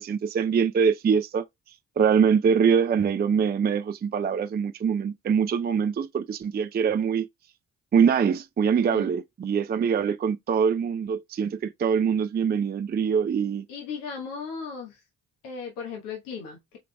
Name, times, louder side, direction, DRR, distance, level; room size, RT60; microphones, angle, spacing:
voice 1, 0.0-1.4 2.0-7.3 7.9-13.7, right 6 dB, 25° right, 0.4 m, -23 dB
voice 2, 8.7-9.1 13.7-15.0 15.4-16.8, left 5 dB, 85° left, 1.2 m, -36 dB
4.6 x 3.8 x 2.2 m
hypercardioid pair, 40°, 38 cm